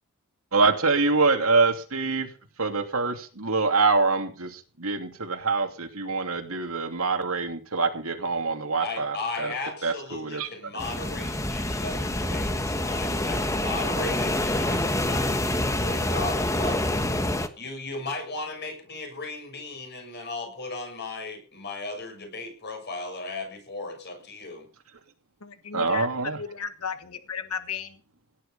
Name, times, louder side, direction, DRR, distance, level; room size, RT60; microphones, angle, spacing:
voice 1, 0.5-2.3 2.6-4.5 4.8-9.5 9.8-10.5 25.7-26.4, right 4 dB, 75° right, 5 dB, 2.8 m, -25 dB
voice 2, 8.8-16.8 17.6-24.6, left 3 dB, 50° left, 4 dB, 7.0 m, -36 dB
sound 1, 10.8-17.5, left 1 dB, 15° left, 1.3 m, -27 dB
voice 3, 25.7-26.1 26.4-28.0, left 6 dB, 90° left, 10 dB, 1.4 m, -34 dB
17.5 x 11.5 x 5.6 m, 0.39 s
head